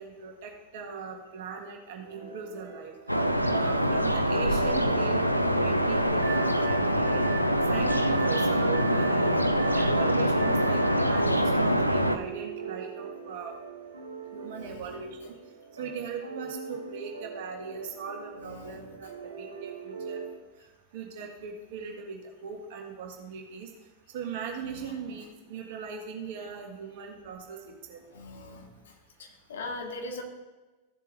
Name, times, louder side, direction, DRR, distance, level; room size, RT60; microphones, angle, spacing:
voice 1, 0.0-2.9 3.5-5.2 5.6-7.2 7.7-9.3 9.7-13.5 14.3-15.3 15.8-19.1 19.4-20.2 20.9-23.7 24.1-27.6 27.9-28.0, right 6 dB, 50° right, 1 dB, 1.6 m, -39 dB
sound 1, 2.0-20.3, right 5 dB, 75° right, 1.6 m, -43 dB
sound 2, 3.1-12.2, equal, 90° right, 0.5 m, -24 dB
sound 3, 6.2-11.1, right 9 dB, 10° right, 0.9 m, -43 dB
voice 2, 18.4-18.8 28.1-28.7 29.2-30.2, left 2 dB, 60° left, 2 dB, 1.7 m, -40 dB
15.0 x 7.4 x 2.6 m, 1.2 s
figure-of-eight pair, 90°, 0 cm